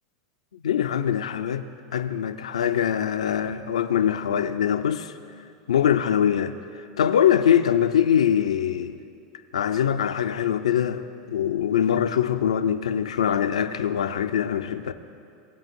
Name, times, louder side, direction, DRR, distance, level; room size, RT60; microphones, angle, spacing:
voice 1, 0.6-1.6 1.9-5.1 5.7-6.6 7.0-9.0 9.5-14.9, left 9 dB, 80° left, 10 dB, 0.4 m, -23 dB
18.5 x 9.0 x 2.6 m, 2.4 s
hypercardioid pair, 90°, 3 cm